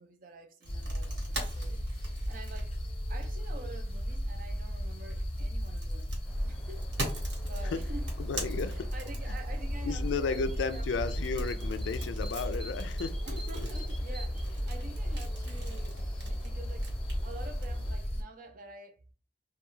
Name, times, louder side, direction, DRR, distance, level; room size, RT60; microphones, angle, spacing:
voice 1, 0.0-1.8 2.3-2.8 3.1-6.1 6.4-6.9 7.4-8.1 8.7-11.2 13.2-16.9 17.2-19.1, right 2 dB, 50° right, 0.4 m, -48 dB
sound 1, 0.6-3.5 5.0-9.7 11.1-17.6, right 2 dB, 80° right, 1.2 m, -43 dB
sound 2, 0.7-18.2, equal, 30° left, 0.6 m, -35 dB
sound 3, 6.3-17.9, equal, ahead, 0.8 m, -52 dB
voice 2, 8.2-8.9 9.8-13.2, left 4 dB, 75° left, 0.3 m, -33 dB
2.3 x 2.3 x 3.0 m
head